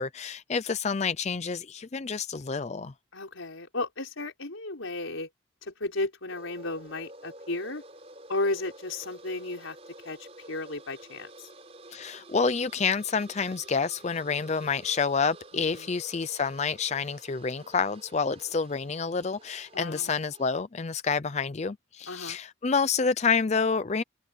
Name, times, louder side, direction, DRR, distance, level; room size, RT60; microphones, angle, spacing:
voice 1, 0.0-2.9 11.9-24.0, left 5 dB, 35° left, 0.5 m, -28 dB
voice 2, 3.1-5.3 5.6-7.8 8.3-9.8 10.0-11.5 15.7-15.9 19.7-20.1 22.1-22.4, left 2 dB, 85° left, 4.7 m, -34 dB
sound 1, 6.3-20.5, right 2 dB, 30° right, 4.8 m, -50 dB
head